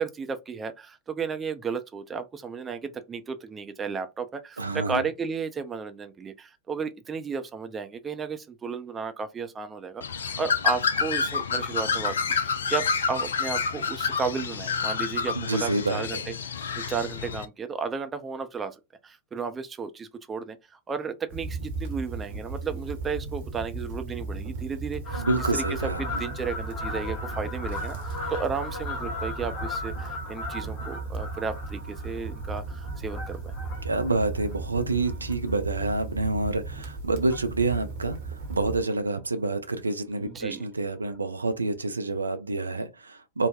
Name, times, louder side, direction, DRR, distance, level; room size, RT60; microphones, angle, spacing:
voice 1, 0.0-12.1 12.4-18.8 19.0-25.2 25.5-33.5 40.2-40.7, right 5 dB, 20° right, 0.4 m, -33 dB
voice 2, 4.6-5.0 15.3-16.2 25.2-26.2 33.8-43.5, right 2 dB, 80° right, 0.4 m, -28 dB
Bird, 10.0-17.5, left 6 dB, 65° left, 0.3 m, -28 dB
sound 1, 21.3-38.8, right 3 dB, 55° right, 0.9 m, -36 dB
Fowl, 25.0-35.8 36.3-36.5 37.2-37.8 38.1-38.2 38.4-38.5 38.8-38.9 39.3-39.4 40.4-40.5 41.1-41.2, left 3 dB, 45° left, 1.1 m, -38 dB
3.2 x 2.1 x 2.3 m
figure-of-eight pair, 90°, 0 cm